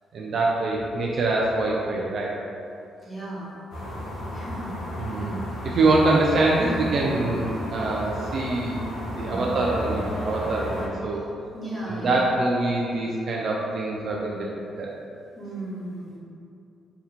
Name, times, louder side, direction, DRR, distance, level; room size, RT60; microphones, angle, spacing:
voice 1, 0.1-2.3 5.0-8.8 9.1-11.2 11.9-14.4 14.8-14.9, right 2 dB, 55° right, -3 dB, 0.3 m, -24 dB
voice 2, 3.0-3.6 3.8-5.3 9.2-9.5 11.1-11.2 11.5-12.3 15.3-16.2, right 1 dB, ahead, -9 dB, 1.3 m, -36 dB
sound 1, 3.7-10.9, left 1 dB, 60° left, 0.7 m, -33 dB
2.8 x 2.2 x 3.4 m, 2.5 s
hypercardioid pair, 45°, 0 cm